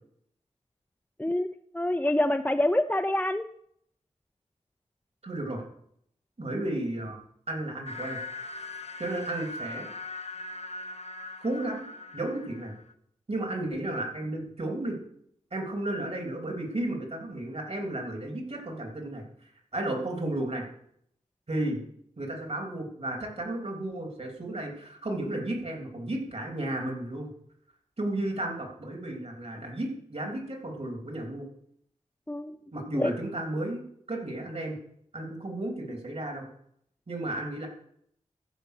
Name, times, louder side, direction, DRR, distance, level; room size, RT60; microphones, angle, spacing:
voice 1, 1.7-3.5 32.3-32.6 32.9-33.1, left 1 dB, 15° left, 6 dB, 0.5 m, -26 dB
voice 2, 5.2-5.6 6.4-7.2 7.5-8.2 9.0-9.9 11.4-11.9 12.1-12.7 13.3-15.0 15.5-19.2 19.7-20.6 21.5-21.8 22.2-27.3 28.0-31.4 32.7-34.8 35.1-36.4 37.1-37.7, right 1 dB, 55° right, 1 dB, 3.1 m, -33 dB
sound 1, 7.9-12.9, left 3 dB, 55° left, 0.8 m, -40 dB
14.0 x 5.4 x 6.6 m, 0.70 s
cardioid pair, 55°, 13 cm